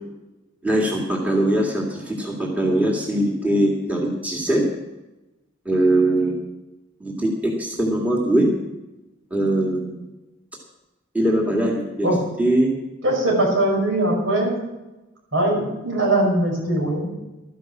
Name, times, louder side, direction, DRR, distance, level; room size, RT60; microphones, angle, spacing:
voice 1, 0.6-4.6 5.7-6.4 7.0-8.5 9.3-10.0 11.1-12.1 12.4-12.7, right 1 dB, 10° right, -2 dB, 2.1 m, -21 dB
voice 2, 13.0-14.5 15.3-17.1, right 1 dB, 70° right, -1 dB, 5.6 m, -21 dB
13.0 x 11.0 x 6.0 m, 1.0 s
head